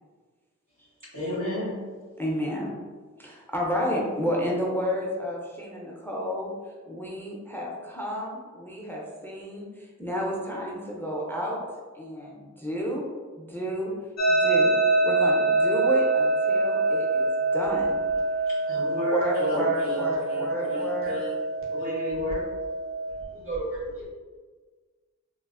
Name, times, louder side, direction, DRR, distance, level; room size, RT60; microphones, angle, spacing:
voice 1, 1.1-1.8 18.5-21.3 21.7-22.5, left 1 dB, 85° right, -11 dB, 1.4 m, -32 dB
voice 2, 2.2-2.7 3.2-6.5 6.9-11.6 11.9-13.0 13.4-13.9 14.3-14.8 15.0-18.0 19.1-21.1, equal, 5° left, -3 dB, 0.5 m, -31 dB
sound 1, 14.2-23.2, right 2 dB, 65° left, 0.5 m, -25 dB
voice 3, 23.3-24.1, right 2 dB, 45° right, -4 dB, 0.8 m, -33 dB
3.0 x 2.0 x 2.3 m, 1.4 s
wide cardioid pair, 45°, 30 cm